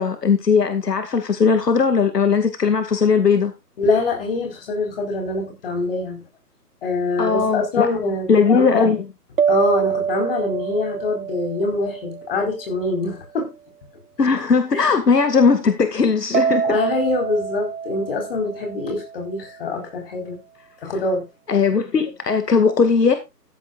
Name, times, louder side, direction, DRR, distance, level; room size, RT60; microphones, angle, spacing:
voice 1, 0.0-3.5 7.2-7.9 8.3-9.0 14.2-16.8 21.5-23.1, left 5 dB, 75° left, 2.3 m, -18 dB
voice 2, 3.8-6.2 6.8-8.9 9.5-13.5 16.6-20.4 20.8-21.3, left 3 dB, 35° left, 4.8 m, -24 dB
sound 1, 9.4-12.9 16.3-19.4, right 7 dB, 55° right, 0.8 m, -25 dB
14.5 x 11.0 x 2.5 m
hypercardioid pair, 165°, 48 cm